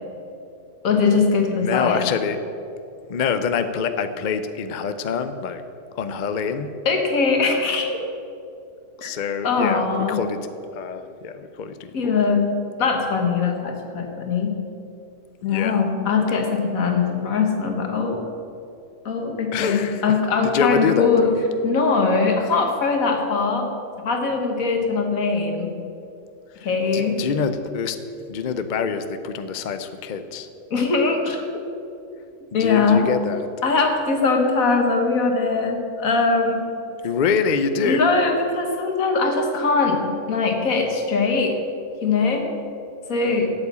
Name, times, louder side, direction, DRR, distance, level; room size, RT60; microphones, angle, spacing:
voice 1, 0.8-2.0 6.9-8.0 9.0-9.1 9.4-10.2 11.9-14.6 15.4-18.2 19.1-21.3 21.6-23.7 24.0-25.8 26.6-27.2 30.7-31.7 32.5-33.1 33.6-36.6 37.8-41.6 42.0-42.5 43.1-43.5, left 4 dB, 75° left, 3 dB, 1.8 m, -21 dB
voice 2, 1.6-2.4 3.1-5.6 5.9-6.8 9.0-12.2 15.4-15.8 19.5-20.2 20.4-21.4 26.6-28.0 28.3-30.5 32.5-33.5 37.0-38.1, left 6 dB, 50° left, 9 dB, 0.5 m, -25 dB
8.3 x 7.8 x 8.3 m, 2.6 s
omnidirectional pair, 1.4 m